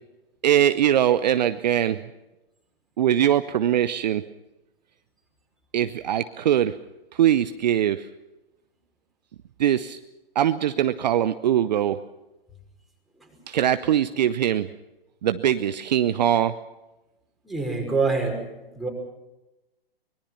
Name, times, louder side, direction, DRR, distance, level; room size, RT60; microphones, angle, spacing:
voice 1, 0.4-2.0 3.0-4.2 5.7-6.8 7.1-8.1 9.6-10.0 10.3-12.0 13.5-14.7 15.2-16.5, right 10 dB, 45° right, 11 dB, 0.9 m, -22 dB
voice 2, 17.5-18.3 18.8-18.9, right 4 dB, ahead, -1 dB, 5.5 m, -24 dB
24.5 x 22.0 x 5.8 m, 1.0 s
figure-of-eight pair, 125°, 30 cm